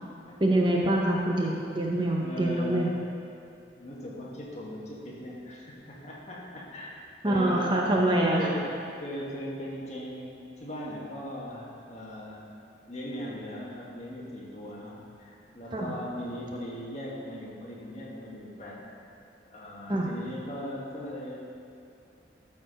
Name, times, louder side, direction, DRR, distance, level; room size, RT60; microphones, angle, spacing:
voice 1, 0.4-2.9 7.2-8.5 15.7-15.9 19.9-20.1, right 1 dB, 25° right, -2 dB, 0.7 m, -25 dB
voice 2, 2.2-3.0 3.8-12.4 12.9-18.8 19.1-19.2 19.4-21.4, left 1 dB, 40° left, -5 dB, 1.6 m, -39 dB
12.5 x 4.3 x 5.2 m, 2.5 s
head